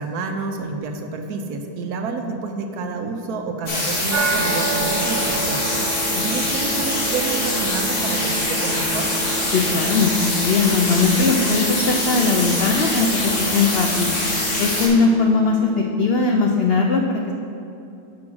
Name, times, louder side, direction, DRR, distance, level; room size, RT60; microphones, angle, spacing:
voice 1, 0.0-5.8 6.2-9.1, right 4 dB, 80° right, 4 dB, 1.2 m, -29 dB
sound 1, 3.7-14.9, left 2 dB, 50° left, 1.7 m, -24 dB
sound 2, 4.1-16.1, right 5 dB, 60° right, 0.9 m, -30 dB
voice 2, 9.5-14.1 14.6-17.3, left 4 dB, 80° left, 2 dB, 0.5 m, -20 dB
6.1 x 6.1 x 6.0 m, 2.7 s
omnidirectional pair, 1.6 m